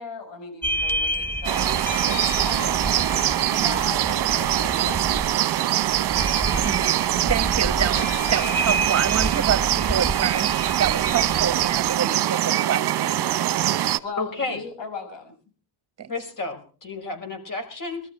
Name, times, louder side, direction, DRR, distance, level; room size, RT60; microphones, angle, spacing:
voice 1, 0.0-2.9 3.5-6.0 14.0-15.3, left 4 dB, 65° left, 6.0 m, -38 dB
sound 1, 0.6-12.0, right 1 dB, 5° left, 1.0 m, -30 dB
sound 2, 1.4-14.0, right 13 dB, 55° right, 1.1 m, -23 dB
voice 2, 6.6-7.0 7.3-13.2 16.0-16.1, right 8 dB, 35° right, 1.6 m, -27 dB
voice 3, 14.2-14.6 16.1-18.0, left 3 dB, 40° left, 5.5 m, -31 dB
22.5 x 13.5 x 4.5 m
cardioid pair, 120°, 46 cm